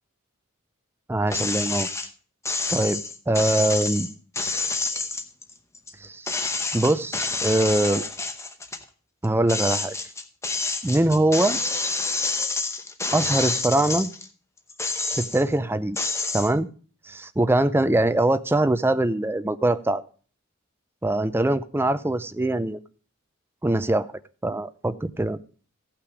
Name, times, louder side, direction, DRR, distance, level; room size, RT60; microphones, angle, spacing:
voice 1, 1.1-2.1 2.7-4.1 6.0-6.3 6.7-8.0 9.2-10.0 10.8-11.6 13.1-14.1 15.1-16.7 17.1-20.0 21.0-22.8 23.6-24.1 24.4-25.4, right 1 dB, 10° right, 12 dB, 0.4 m, -23 dB
sound 1, 1.3-2.1 2.5-5.9 6.3-8.8 9.2-14.3 14.7-15.5 16.0-16.5, left 3 dB, 15° left, 0.8 m, -28 dB
15.5 x 6.0 x 4.8 m, 0.40 s
head